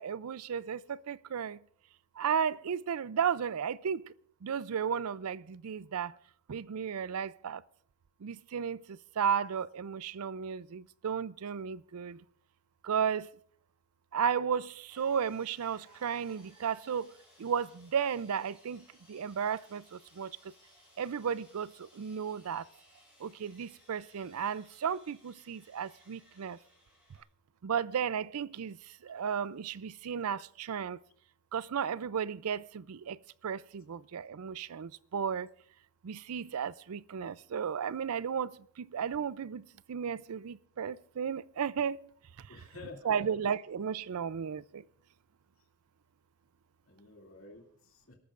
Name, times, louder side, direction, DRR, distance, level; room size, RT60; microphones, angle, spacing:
voice 1, 0.0-1.6 2.2-4.1 4.4-6.1 6.5-7.6 8.2-12.2 12.8-13.3 14.1-17.1 17.4-20.4 21.0-22.7 23.2-26.6 27.6-28.8 29.0-31.0 31.5-33.2 33.4-35.5 36.0-42.0 43.0-44.8, right 7 dB, 90° right, 0.4 m, -34 dB
Sawing, 14.9-27.2, left 1 dB, 5° right, 7.0 m, -63 dB
voice 2, 42.5-43.3 46.9-48.1, left 3 dB, 65° left, 2.6 m, -50 dB
28.0 x 13.5 x 2.5 m
head